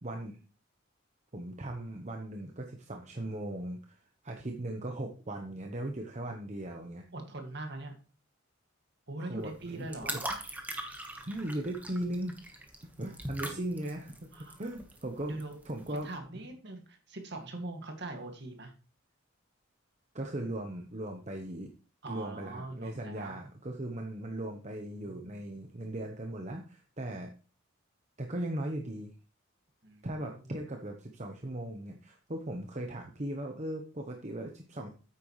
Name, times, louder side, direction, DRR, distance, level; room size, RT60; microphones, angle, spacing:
voice 1, 0.0-0.4 1.3-4.0 4.2-7.0 9.2-10.2 11.3-12.3 13.0-15.4 15.6-16.1 20.1-21.7 22.1-27.3 28.2-29.1 30.0-34.9, right 1 dB, 35° right, 3 dB, 1.0 m, -38 dB
voice 2, 7.1-8.0 9.1-10.2 14.3-14.6 15.2-15.6 15.9-18.7 22.0-23.4 25.0-25.3 25.7-25.8 29.8-30.4, right 2 dB, 55° right, 4 dB, 2.1 m, -42 dB
sound 1, 9.4-16.1, right 1 dB, 10° right, 1.3 m, -42 dB
9.5 x 8.6 x 3.2 m, 0.35 s
head